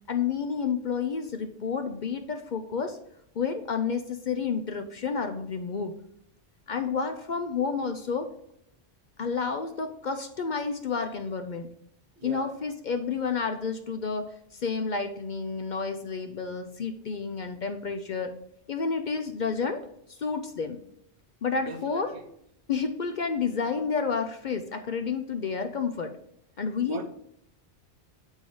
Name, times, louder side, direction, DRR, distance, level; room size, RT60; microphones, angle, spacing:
voice 1, 0.1-3.0 3.4-5.9 6.7-8.3 9.2-11.7 12.2-18.3 18.7-20.8 21.4-22.2 22.7-26.1 26.6-27.0, left 5 dB, 55° left, 0.6 m, -30 dB
voice 2, 12.2-12.5 21.6-22.3 26.9-27.0, right 4 dB, 75° right, 1.1 m, -40 dB
7.6 x 3.6 x 5.2 m
omnidirectional pair, 1.1 m